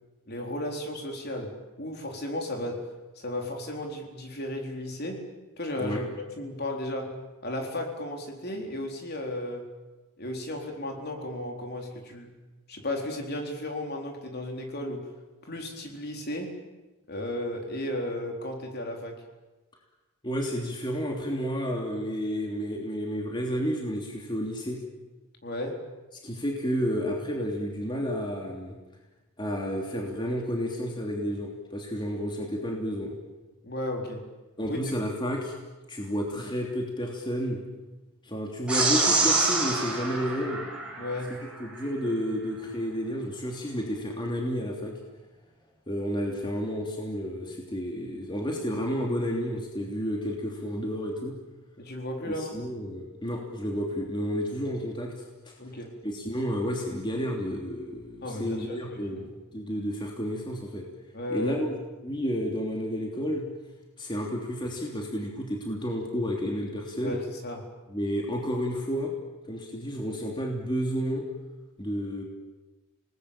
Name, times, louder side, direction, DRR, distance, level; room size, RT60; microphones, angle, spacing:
voice 1, 0.3-2.8 3.2-5.3 5.6-6.0 6.3-9.7 10.2-12.3 12.7-15.1 15.4-16.6 17.1-19.2 25.4-25.9 33.6-34.3 34.7-34.8 41.0-41.4 51.8-52.7 55.6-56.0 58.2-59.2 61.1-61.6 67.0-67.7, left 1 dB, 45° left, 2 dB, 4.1 m, -34 dB
voice 2, 20.2-24.8 26.2-28.8 29.4-33.1 34.6-35.5 35.9-37.6 38.2-40.6 41.6-45.0 45.9-51.3 52.3-55.1 55.5-55.6 56.0-60.8 61.3-61.7 62.0-63.5 64.0-67.2 67.9-69.1 69.5-71.2 71.8-72.2, equal, 20° left, 0 dB, 3.1 m, -31 dB
sound 1, 38.7-41.3, right 3 dB, 5° right, 4.9 m, -26 dB
28.5 x 19.5 x 8.9 m, 1.1 s
head